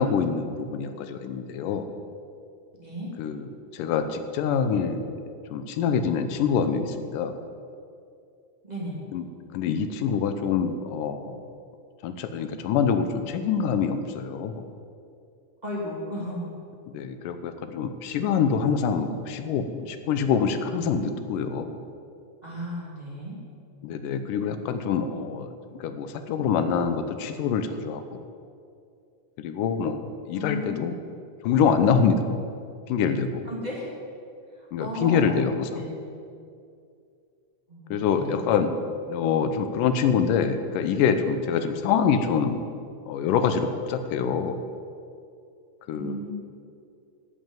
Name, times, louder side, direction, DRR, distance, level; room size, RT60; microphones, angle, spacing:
voice 1, 0.0-1.8 3.2-3.5 3.7-5.1 5.5-7.4 9.1-9.2 9.5-11.4 12.0-14.6 16.9-21.8 23.8-25.5 25.8-28.2 29.4-31.0 31.4-32.2 32.9-33.4 34.7-35.8 37.9-38.7 39.1-42.6 43.1-44.6 45.9-46.2, left 6 dB, 90° left, 9 dB, 2.4 m, -25 dB
voice 2, 2.8-3.1 8.6-9.0 15.6-16.5 22.4-23.4 30.3-30.9 33.4-33.9 34.5-35.3 35.7-35.9 37.7-38.4 45.9-46.3, left 1 dB, 15° right, -5 dB, 2.6 m, -34 dB
11.0 x 8.7 x 9.0 m, 2.4 s
omnidirectional pair, 3.7 m